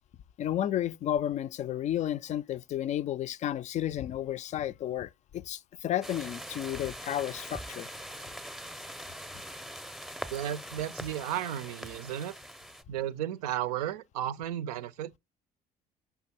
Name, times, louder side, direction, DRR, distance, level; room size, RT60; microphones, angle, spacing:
voice 1, 0.4-7.9, left 11 dB, 35° left, 0.4 m, -32 dB
sound 1, 6.0-12.8, equal, ahead, 0.6 m, -42 dB
voice 2, 10.3-12.3 12.9-15.2, right 11 dB, 65° right, 0.5 m, -34 dB
5.7 x 5.6 x 4.2 m
figure-of-eight pair, 55°, 21 cm